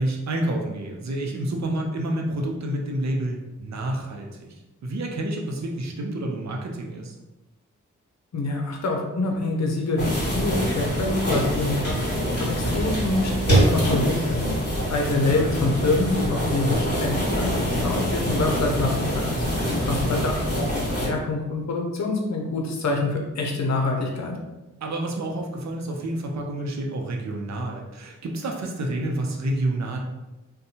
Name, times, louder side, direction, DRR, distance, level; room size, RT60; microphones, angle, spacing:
voice 1, 0.0-7.1 12.6-12.8 20.0-20.3 24.8-30.0, right 1 dB, 60° right, 1 dB, 0.6 m, -29 dB
voice 2, 8.3-14.5 14.9-19.3 19.8-24.4, left 2 dB, 60° left, 1 dB, 0.7 m, -26 dB
sound 1, 10.0-21.1, equal, 30° left, 1.5 m, -25 dB
2.6 x 2.2 x 2.8 m, 1.0 s
cardioid pair, 45°, 32 cm